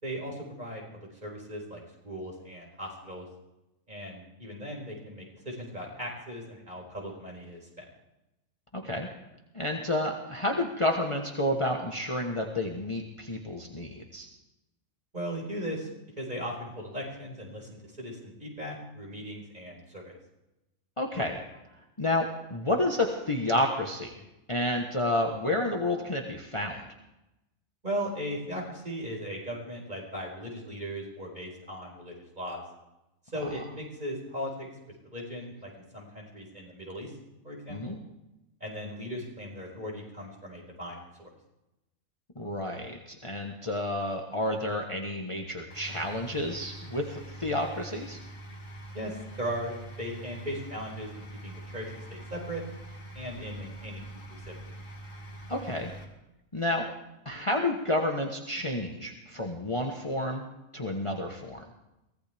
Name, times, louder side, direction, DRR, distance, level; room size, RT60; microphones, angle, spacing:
voice 1, 0.0-3.3 3.9-7.9 15.1-15.9 16.2-20.1 27.8-32.6 33.3-34.7 35.1-37.1 37.4-38.0 38.6-41.3 48.9-52.6 53.1-54.2 54.5-54.7, equal, 35° right, -1 dB, 5.1 m, -38 dB
voice 2, 8.7-9.1 9.5-14.3 21.0-21.4 22.0-24.1 24.5-26.9 37.7-38.0 42.3-48.2 55.5-55.9 56.5-56.9 57.2-60.4 60.7-61.6, left 1 dB, 25° left, 1 dB, 1.3 m, -30 dB
sound 1, 45.7-56.0, right 1 dB, 80° left, 2.9 m, -44 dB
23.5 x 17.0 x 3.5 m, 0.93 s
omnidirectional pair, 1.4 m